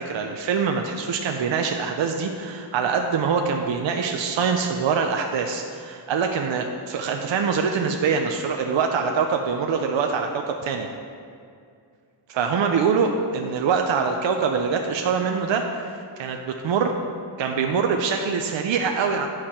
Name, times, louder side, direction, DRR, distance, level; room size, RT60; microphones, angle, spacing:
voice 1, 0.0-10.9 12.3-15.9 16.2-16.9 17.4-19.3, right 5 dB, 70° right, 3 dB, 0.7 m, -24 dB
8.9 x 4.9 x 5.7 m, 2.3 s
wide cardioid pair, 145°, 47 cm